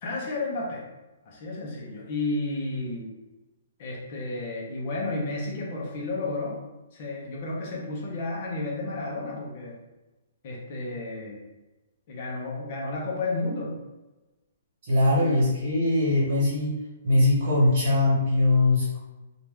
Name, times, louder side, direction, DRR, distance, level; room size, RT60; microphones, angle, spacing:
voice 1, 0.0-0.8 1.2-3.1 3.8-6.6 6.9-9.8 10.4-11.4 12.1-13.7 15.2-15.5, left 2 dB, 30° left, -3 dB, 0.7 m, -32 dB
voice 2, 14.8-16.7 17.0-19.0, left 2 dB, 40° right, -9 dB, 1.4 m, -21 dB
2.9 x 2.4 x 3.4 m, 1.1 s
hypercardioid pair, 175°, 0 cm